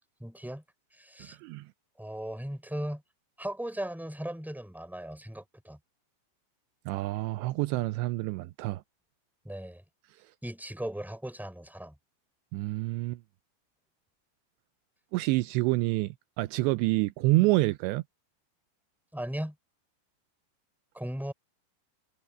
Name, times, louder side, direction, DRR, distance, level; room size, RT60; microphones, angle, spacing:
voice 1, 0.2-0.6 1.0-1.4 2.0-3.0 3.4-5.8 9.4-9.8 10.4-11.9 19.1-19.5 20.9-21.3, right 1 dB, ahead, 4.3 m, -37 dB
voice 2, 6.9-8.8 12.5-13.2 15.1-18.0, right 20 dB, 90° right, 2.5 m, -27 dB
omnidirectional pair, 5.7 m